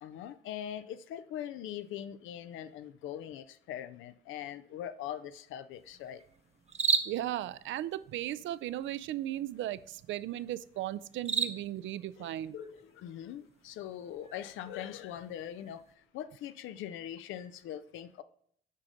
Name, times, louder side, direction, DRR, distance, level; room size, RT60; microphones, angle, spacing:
voice 1, 0.0-6.2 12.2-15.8 16.1-18.2, left 10 dB, 85° left, 13 dB, 0.5 m, -42 dB
sound 1, 5.7-16.0, right 5 dB, 30° right, 0.7 m, -39 dB
voice 2, 7.0-12.6, right 13 dB, 70° right, 17 dB, 0.4 m, -36 dB
7.5 x 5.0 x 3.9 m, 0.64 s
cardioid pair, 90°, 20 cm